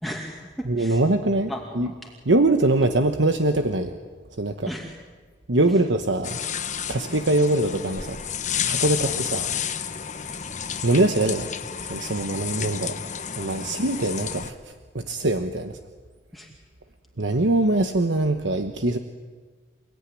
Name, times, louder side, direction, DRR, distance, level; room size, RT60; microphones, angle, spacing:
voice 1, 0.0-1.0 1.5-2.1 4.7-5.1 5.7-5.8 9.0-9.1 10.3-10.4 16.3-16.5, equal, ahead, -1 dB, 2.3 m, -36 dB
voice 2, 0.7-1.5 1.8-1.9 2.3-4.0 4.4-4.7 5.5-6.4 6.9-8.2 8.7-9.4 10.8-11.5 11.9-13.0 13.4-15.8 17.2-19.0, right 2 dB, 75° right, 7 dB, 1.2 m, -23 dB
sound 1, 6.2-14.5, left 8 dB, 40° left, 1.3 m, -31 dB
29.0 x 17.5 x 9.9 m, 1.5 s
head